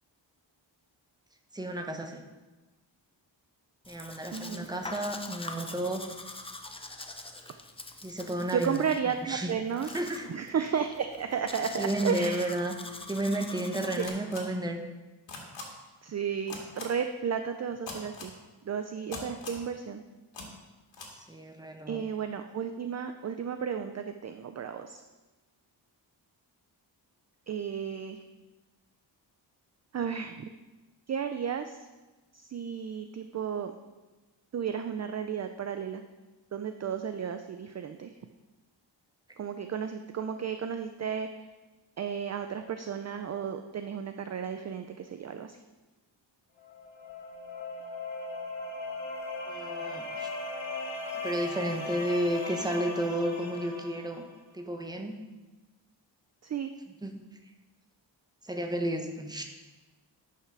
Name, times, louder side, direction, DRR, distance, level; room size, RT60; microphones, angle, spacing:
voice 1, 1.5-2.2 3.9-6.0 8.0-8.8 9.3-9.5 9.9-10.3 11.8-12.7 13.1-14.8 21.3-22.1 49.5-50.3 51.2-54.3 54.5-55.2 57.0-57.2 58.4-59.4, right 1 dB, 10° right, 4 dB, 0.9 m, -32 dB
Domestic sounds home sounds, 3.8-14.1, left 2 dB, 15° left, 0.5 m, -44 dB
voice 2, 4.3-4.7 8.5-9.9 10.3-12.5 13.9-14.0 16.0-18.3 18.6-20.0 21.9-25.0 27.5-28.2 29.9-30.5 31.1-31.8 32.3-33.7 34.5-36.0 36.5-38.1 39.4-41.5 42.0-45.6 56.4-56.7, right 7 dB, 40° right, 7 dB, 0.4 m, -33 dB
sound 1, 14.0-14.4 15.3-15.6 16.5-16.8 17.9-18.3 19.1-19.6 20.3-20.4 20.9-21.1, left 4 dB, 70° left, 2.1 m, -40 dB
sound 2, 46.6-54.4, left 3 dB, 85° left, 1.7 m, -38 dB
9.8 x 5.8 x 6.1 m, 1.2 s
wide cardioid pair, 165°, 45 cm